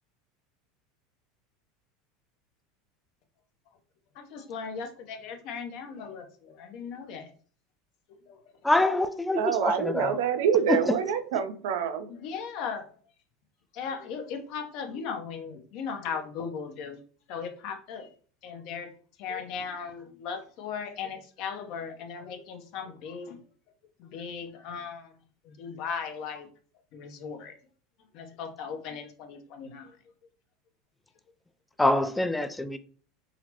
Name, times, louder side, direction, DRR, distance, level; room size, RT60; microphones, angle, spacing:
voice 1, 4.1-7.3 8.3-8.4 12.1-12.8 13.7-17.0 17.3-18.1 18.4-18.9 19.2-23.4 24.0-25.2 25.4-26.5 26.9-27.5 28.1-30.0, left 6 dB, 60° left, 0.6 m, -37 dB
voice 2, 8.6-10.2 10.7-10.9 31.8-32.8, left 2 dB, 5° left, 0.3 m, -25 dB
voice 3, 9.4-12.1, right 8 dB, 80° right, 0.4 m, -26 dB
3.9 x 2.0 x 2.8 m
hypercardioid pair, 95°, 0 cm